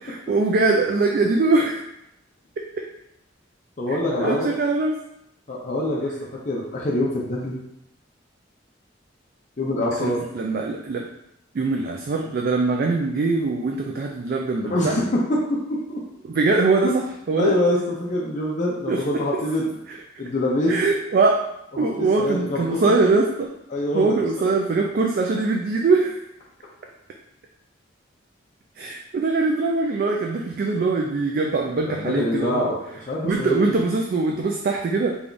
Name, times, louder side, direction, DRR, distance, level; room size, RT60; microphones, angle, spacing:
voice 1, 0.0-1.8 3.9-4.9 10.0-11.1 11.5-15.0 16.3-17.5 18.9-19.0 20.7-21.5 21.8-23.5 23.9-26.2 28.8-32.7 33.2-35.2, right 3 dB, 50° right, 1 dB, 0.3 m, -22 dB
voice 2, 3.8-4.5 5.5-7.6 9.6-10.2 14.7-16.0 17.4-19.7 20.2-20.9 22.0-22.8 23.7-24.2 31.8-32.8 33.1-33.8, left 1 dB, 40° left, -4 dB, 0.5 m, -25 dB
3.4 x 2.3 x 3.8 m, 0.82 s
head